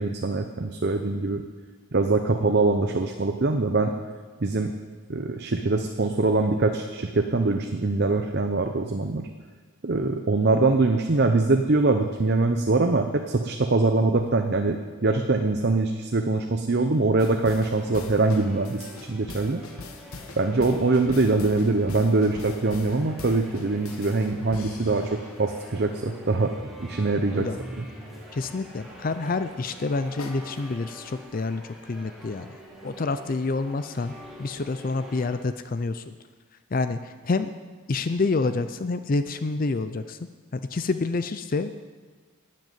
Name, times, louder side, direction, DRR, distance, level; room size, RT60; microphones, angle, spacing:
voice 1, 0.0-1.5 1.9-3.9 4.4-4.7 5.1-9.3 9.8-19.6 20.4-26.5 26.8-27.5 27.8-27.9, right 3 dB, 50° right, 5 dB, 0.7 m, -23 dB
sound 1, 17.2-25.4 30.2-30.3, left 3 dB, 80° left, 1.3 m, -42 dB
sound 2, 17.8-35.4, equal, ahead, 2.0 m, -45 dB
voice 2, 28.3-31.6 31.9-32.5 32.8-34.1 34.4-36.1 36.7-37.5 37.9-40.2 40.5-41.7, left 3 dB, 40° left, 11 dB, 0.4 m, -28 dB
12.0 x 7.6 x 9.2 m, 1.5 s
head